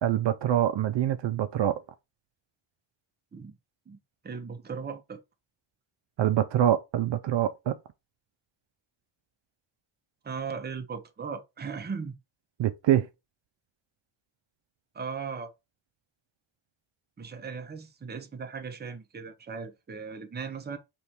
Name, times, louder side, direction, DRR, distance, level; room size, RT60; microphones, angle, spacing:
voice 1, 0.0-1.8 6.2-7.8 12.6-13.1, right 11 dB, 65° right, 0.5 m, -25 dB
voice 2, 4.2-5.2 10.2-12.2 14.9-15.5 17.2-20.8, right 5 dB, 20° right, 0.6 m, -37 dB
3.4 x 3.1 x 4.2 m
wide cardioid pair, 130°, 49 cm